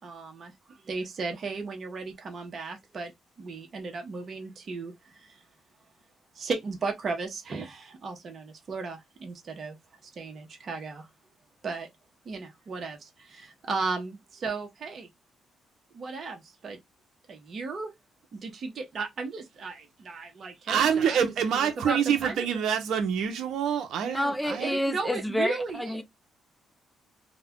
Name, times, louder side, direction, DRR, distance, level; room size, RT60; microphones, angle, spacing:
voice 1, 0.0-3.1 3.4-5.3 6.4-9.8 10.2-11.1 11.6-11.9 12.3-15.1 15.9-16.8 17.3-17.9 18.3-21.3 21.5-22.4 24.6-26.0, right 4 dB, 50° right, 0.8 m, -35 dB
voice 2, 20.7-24.8, right 8 dB, 75° right, 0.7 m, -26 dB
voice 3, 24.0-26.0, left 1 dB, 5° left, 0.4 m, -29 dB
2.3 x 2.2 x 3.5 m
cardioid pair, 90°, 0 cm